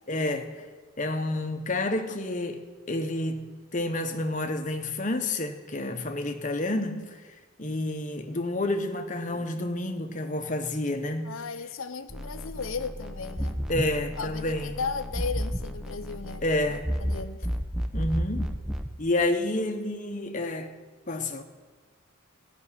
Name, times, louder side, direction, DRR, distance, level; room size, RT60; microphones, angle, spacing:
voice 1, 0.1-0.7 1.0-7.2 7.6-11.4 13.7-14.8 16.4-16.9 17.9-18.5 19.0-20.8 21.1-21.4, left 1 dB, 35° left, 0.9 m, -29 dB
voice 2, 11.3-13.6 14.2-16.4 17.0-17.4, left 5 dB, 70° left, 0.7 m, -35 dB
sound 1, 12.1-18.9, equal, 5° right, 0.7 m, -32 dB
14.5 x 6.2 x 9.8 m
head